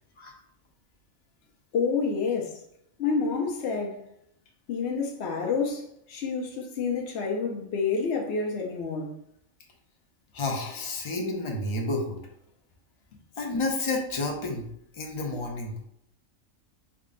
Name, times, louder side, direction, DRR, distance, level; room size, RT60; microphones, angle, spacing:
voice 1, 1.7-2.6 3.0-4.1 4.7-9.2, left 5 dB, 65° left, 0.8 m, -28 dB
voice 2, 10.3-12.1 13.4-15.8, left 2 dB, 35° left, 0.5 m, -30 dB
3.6 x 2.2 x 3.7 m
omnidirectional pair, 1.3 m